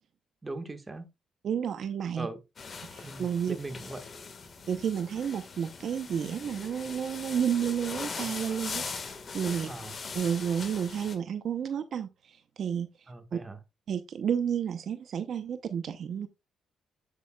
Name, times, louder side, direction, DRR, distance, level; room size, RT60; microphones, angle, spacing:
voice 1, 0.4-1.1 2.2-2.4 3.0-4.0 9.6-9.9 13.1-13.6, right 2 dB, 20° right, 1.5 m, -40 dB
voice 2, 1.4-2.3 2.9-3.6 4.7-9.7 10.1-13.4 13.9-16.3, right 8 dB, 60° right, 0.8 m, -31 dB
sound 1, 2.6-11.2, left 5 dB, 40° left, 1.6 m, -41 dB
8.3 x 8.3 x 2.3 m
cardioid pair, 90°, 0 cm